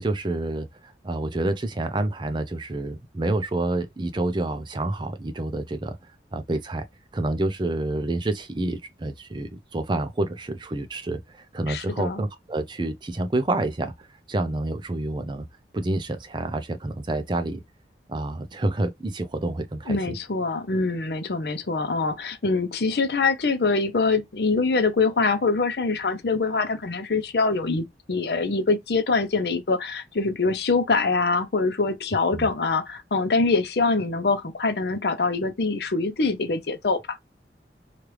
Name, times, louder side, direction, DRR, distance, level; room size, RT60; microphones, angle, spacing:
voice 1, 0.0-6.0 6.3-6.8 7.1-15.4 15.7-17.6 18.1-20.1 32.3-32.5, right 2 dB, 25° right, 0.4 m, -28 dB
voice 2, 11.7-12.2 19.9-37.2, left 3 dB, 65° left, 0.6 m, -24 dB
3.2 x 2.4 x 3.0 m
head